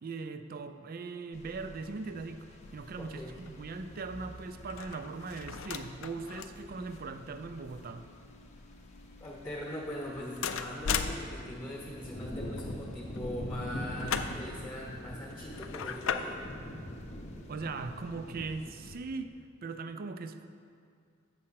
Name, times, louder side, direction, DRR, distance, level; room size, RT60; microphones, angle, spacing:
voice 1, 0.0-8.1 17.5-20.5, right 4 dB, 45° right, 9 dB, 0.4 m, -40 dB
sound 1, 1.3-19.0, equal, 35° left, 0.6 m, -45 dB
sound 2, 2.6-18.1, left 7 dB, 70° left, 0.4 m, -41 dB
voice 2, 3.0-3.4 9.2-16.4, equal, 15° left, -3 dB, 1.0 m, -41 dB
7.5 x 5.5 x 5.7 m, 2.2 s
head